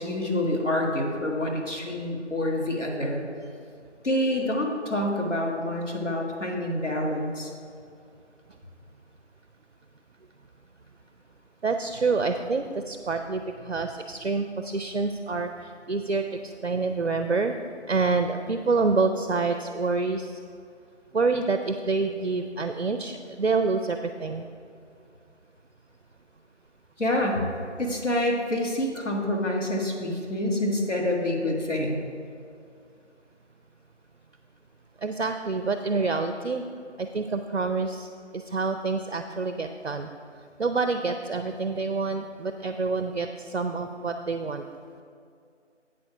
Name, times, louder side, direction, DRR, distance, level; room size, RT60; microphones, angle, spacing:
voice 1, 0.0-3.2 4.0-7.5 27.0-27.4 27.8-32.0, left 1 dB, 80° left, -1 dB, 1.7 m, -27 dB
voice 2, 11.6-17.5 17.9-20.3 21.1-24.5 35.0-36.6 37.0-38.1 38.3-40.1 40.6-44.7, right 4 dB, 60° right, 7 dB, 0.5 m, -27 dB
8.5 x 6.9 x 4.9 m, 2.4 s
figure-of-eight pair, 175°, 36 cm